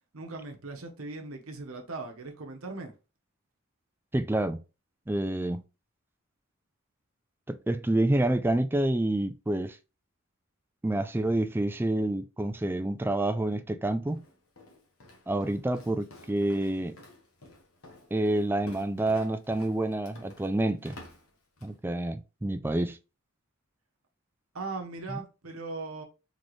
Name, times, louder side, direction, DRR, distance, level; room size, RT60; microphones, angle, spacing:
voice 1, 0.1-2.9 24.5-26.0, right 3 dB, 80° right, 1.0 m, -39 dB
voice 2, 4.1-4.6 5.1-5.6 7.5-9.8 10.8-14.2 15.3-17.0 18.1-21.0 21.6-23.0, right 1 dB, 10° right, 0.3 m, -28 dB
Walk footsteps, 14.1-21.8, left 2 dB, 90° left, 1.2 m, -52 dB
3.9 x 3.7 x 3.2 m
head